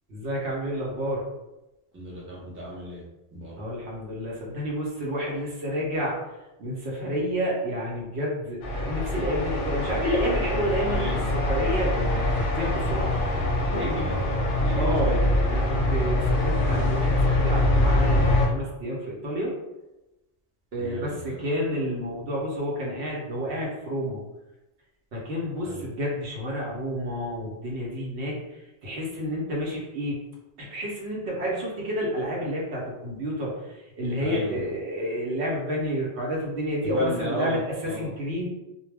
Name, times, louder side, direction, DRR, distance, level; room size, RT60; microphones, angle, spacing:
voice 1, 0.1-1.2 3.6-6.2 6.6-13.2 13.7-14.1 14.7-19.5 20.7-24.2 25.1-30.2 30.6-38.5, equal, 80° right, -3 dB, 1.0 m, -30 dB
voice 2, 1.9-3.0 3.3-3.6 10.9-11.2 13.5-14.2 14.6-15.2 20.8-21.4 25.6-25.8 34.2-34.7 36.8-38.1, equal, 15° right, -5 dB, 0.5 m, -34 dB
sound 1, 8.6-18.5, left 1 dB, 60° left, 0.6 m, -24 dB
2.2 x 2.1 x 3.2 m, 0.98 s
omnidirectional pair, 1.1 m